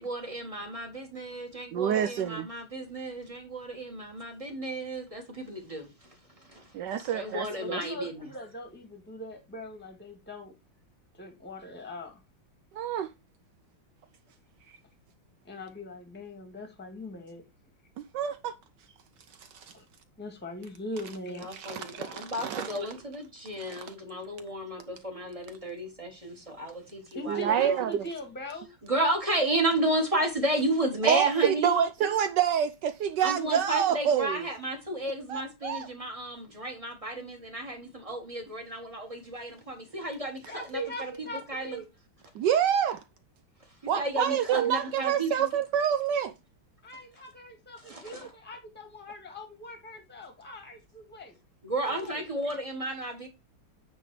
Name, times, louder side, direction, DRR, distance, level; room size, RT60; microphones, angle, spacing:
voice 1, 0.0-6.7 7.0-8.2 21.3-27.8 28.8-31.8 33.2-41.8 43.8-45.5 47.8-48.3 51.6-53.3, right 1 dB, 20° right, 1.5 m, -33 dB
voice 2, 1.7-2.5 6.7-7.8 12.7-13.1 18.1-18.5 19.4-19.7 21.5-22.7 23.6-23.8 27.3-28.0 31.0-34.4 35.3-35.9 42.3-43.0 43.9-46.3, right 9 dB, 75° right, 1.1 m, -27 dB
voice 3, 7.5-10.5 11.1-12.2 15.4-17.4 19.7-19.8 20.2-21.7 27.1-28.7 40.5-41.8 46.8-51.4 51.9-52.2, equal, 5° left, 1.5 m, -41 dB
9.1 x 3.7 x 4.7 m
omnidirectional pair, 2.2 m